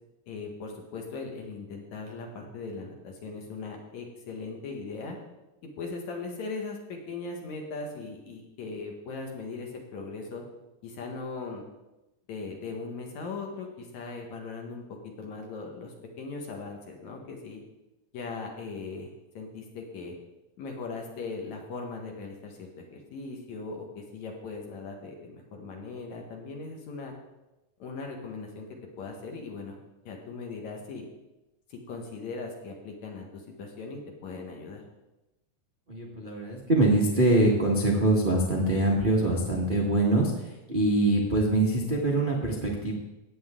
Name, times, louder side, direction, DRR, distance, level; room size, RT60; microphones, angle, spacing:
voice 1, 0.3-5.2 5.6-10.4 10.8-11.6 12.3-14.8 15.2-17.6 18.1-20.1 20.6-27.1 27.8-29.8 30.1-31.1 31.7-34.8, left 4 dB, 60° left, 1 dB, 2.6 m, -39 dB
voice 2, 35.9-43.0, right 2 dB, 65° right, -3 dB, 0.5 m, -24 dB
16.0 x 9.0 x 3.8 m, 0.98 s
omnidirectional pair, 4.1 m